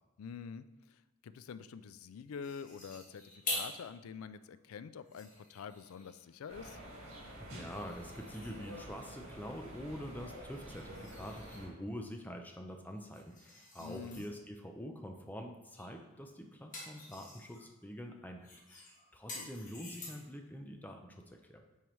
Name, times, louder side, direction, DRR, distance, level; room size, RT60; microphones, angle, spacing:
voice 1, 0.2-6.8 13.8-14.3 19.3-19.5, left 6 dB, 85° left, 13 dB, 0.4 m, -47 dB
sound 1, 2.4-3.8 4.3-4.4 4.9-6.3 7.7-9.0 10.5-11.7 12.9-14.3 15.7-16.0 16.3-17.6 18.4-20.4, left 2 dB, 40° left, 1.5 m, -46 dB
sound 2, 6.5-11.7, equal, 75° right, 2.0 m, -49 dB
voice 2, 7.4-21.7, equal, 10° left, 3 dB, 0.5 m, -46 dB
8.8 x 4.6 x 3.1 m, 1.1 s
head